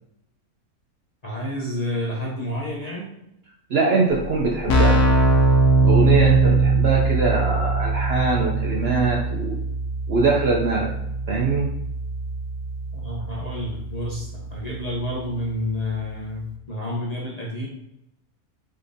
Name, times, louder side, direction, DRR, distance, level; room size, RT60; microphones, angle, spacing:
voice 1, 1.2-3.1 12.9-17.7, left 1 dB, 40° left, -5 dB, 0.6 m, -29 dB
voice 2, 3.7-5.1 5.8-9.6 10.1-10.9 11.3-11.7, right 3 dB, 60° right, -2 dB, 0.7 m, -22 dB
Keyboard (musical), 4.1-4.2 4.4-15.0, right 3 dB, 65° left, 0.9 m, -21 dB
5.0 x 3.3 x 2.6 m, 0.83 s
omnidirectional pair, 1.5 m